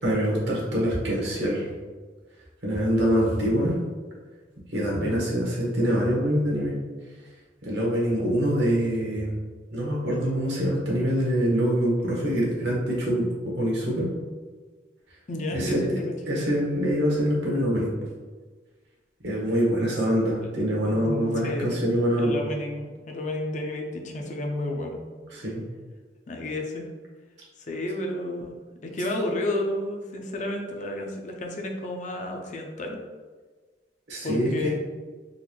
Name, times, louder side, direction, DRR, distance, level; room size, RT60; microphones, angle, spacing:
voice 1, 0.0-1.7 2.6-3.7 4.7-6.8 7.6-9.3 9.7-14.1 15.5-15.8 16.3-17.9 19.2-22.4 25.3-25.6 34.1-34.7, equal, 70° right, -4 dB, 1.2 m, -25 dB
voice 2, 4.9-5.2 15.3-16.1 19.8-19.9 20.8-21.8 22.2-25.0 26.3-26.9 27.7-28.5 28.8-33.0 34.2-34.7, left 1 dB, 45° left, 2 dB, 0.5 m, -31 dB
3.9 x 2.5 x 3.0 m, 1.4 s
head